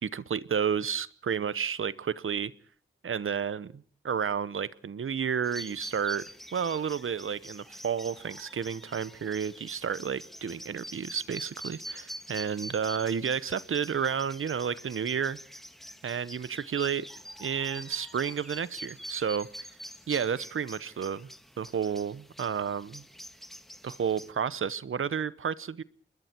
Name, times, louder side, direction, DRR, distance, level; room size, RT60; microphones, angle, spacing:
voice 1, 0.0-2.5 3.0-6.3 6.5-15.4 16.0-17.1 17.4-19.7 20.1-21.3 21.6-23.0 23.8-25.8, right 7 dB, 80° right, 0.9 m, -31 dB
sound 1, 5.4-24.3, equal, ahead, 1.7 m, -46 dB
27.5 x 21.5 x 4.5 m
cardioid pair, 60°, 21 cm